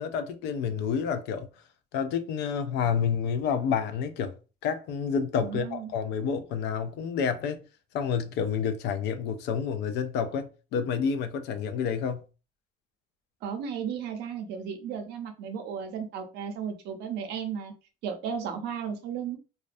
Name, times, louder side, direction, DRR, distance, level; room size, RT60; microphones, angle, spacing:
voice 1, 0.0-1.5 1.9-4.4 4.6-7.6 7.9-12.2, left 7 dB, 80° left, 0.4 m, -29 dB
voice 2, 5.4-5.9 13.4-17.7 18.0-19.4, right 7 dB, 90° right, 0.6 m, -34 dB
2.3 x 2.1 x 2.5 m
cardioid pair, 110°, 17 cm